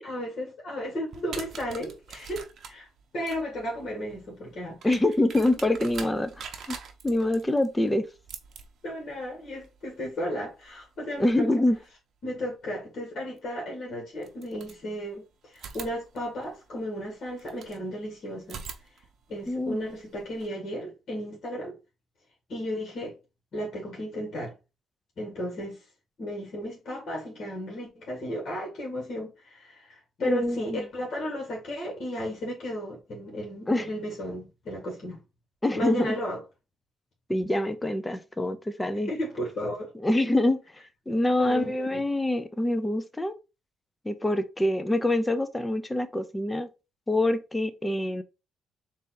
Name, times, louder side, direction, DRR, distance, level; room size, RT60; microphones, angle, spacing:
voice 1, 0.0-2.9 3.1-5.0 8.8-11.5 12.2-18.6 19.3-21.8 22.5-23.2 23.5-24.5 25.2-25.8 26.2-35.2 35.7-36.4 38.9-39.9 41.4-42.0, equal, 55° left, 1.7 m, -34 dB
sound 1, 1.1-11.9 13.4-13.5 14.2-15.2 15.5-17.8 18.4-20.5, right 6 dB, 60° right, 0.7 m, -45 dB
voice 2, 4.8-6.8 7.0-8.1 11.2-11.8 19.5-19.8 30.2-30.8 33.7-33.9 35.6-36.2 37.3-39.1 40.0-40.6 41.1-43.3 44.1-46.7 47.1-48.2, left 1 dB, 15° left, 0.6 m, -25 dB
4.0 x 2.5 x 3.8 m
cardioid pair, 90°, 0 cm